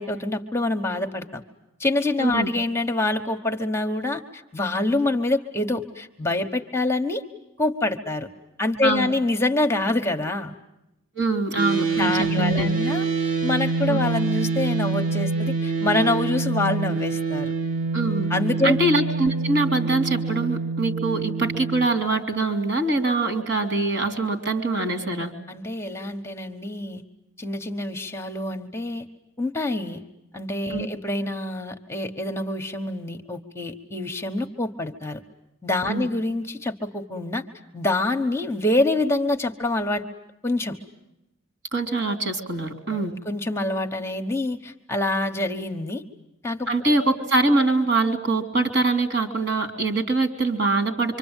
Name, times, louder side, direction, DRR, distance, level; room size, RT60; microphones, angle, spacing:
voice 1, 0.0-1.4 1.8-7.2 7.6-8.3 8.6-10.5 11.9-17.5 18.3-18.8 25.5-27.0 27.4-29.0 29.4-30.0 30.3-35.2 35.6-37.4 37.7-40.0 40.4-40.8 42.9-46.0 46.4-46.7, left 2 dB, 15° left, 4 dB, 1.2 m, -26 dB
voice 2, 8.8-9.1 11.2-12.9 13.9-14.0 17.9-18.3 18.6-25.3 30.7-30.9 35.9-36.1 41.7-43.1 46.7-51.2, right 2 dB, 60° right, 6 dB, 3.4 m, -23 dB
sound 1, 11.6-21.9, right 4 dB, 40° right, 1.9 m, -26 dB
26.0 x 25.5 x 9.0 m, 0.89 s
head